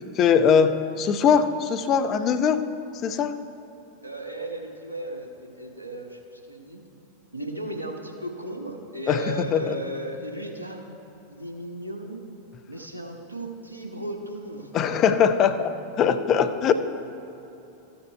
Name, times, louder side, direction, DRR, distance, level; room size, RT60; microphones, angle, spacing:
voice 1, 0.2-2.6 3.0-3.3 9.1-9.8 14.7-15.7 16.0-16.7, left 7 dB, 35° left, 10 dB, 0.5 m, -21 dB
voice 2, 4.0-6.8 7.3-10.8 11.3-12.2 12.7-14.7, right 1 dB, 85° right, 2 dB, 1.0 m, -35 dB
14.0 x 7.1 x 4.5 m, 2.9 s
figure-of-eight pair, 90°, 0 cm